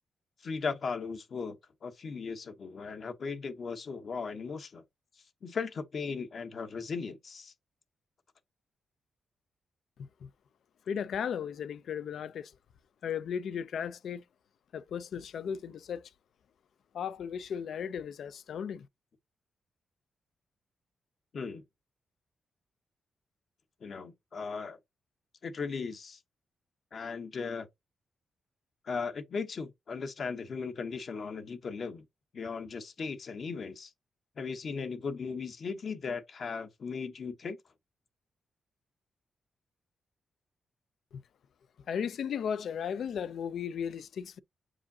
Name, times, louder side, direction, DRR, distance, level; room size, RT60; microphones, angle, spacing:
voice 1, 0.4-1.6 1.8-4.8 5.4-7.5 21.3-21.6 23.8-24.8 25.4-26.2 26.9-27.7 28.8-32.0 32.3-33.9 34.4-37.6, left 5 dB, 50° left, 0.8 m, -37 dB
voice 2, 10.9-12.5 13.0-14.2 14.7-16.1 16.9-18.9 41.9-44.4, left 7 dB, 70° left, 0.5 m, -35 dB
7.3 x 4.9 x 2.7 m
wide cardioid pair, 135°, 0 cm